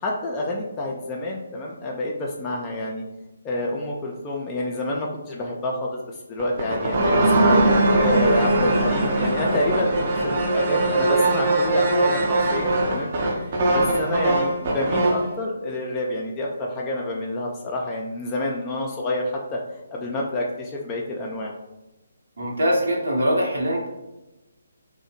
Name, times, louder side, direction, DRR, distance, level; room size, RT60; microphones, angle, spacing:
voice 1, 0.0-3.0 3.4-6.0 6.3-7.7 8.0-21.5, left 1 dB, 20° left, -2 dB, 0.3 m, -28 dB
sound 1, 6.4-15.3, right 2 dB, 40° right, 0.5 m, -21 dB
voice 2, 22.4-23.9, equal, 70° right, -2 dB, 0.8 m, -22 dB
2.6 x 2.1 x 2.6 m, 0.99 s
figure-of-eight pair, 145°, 0 cm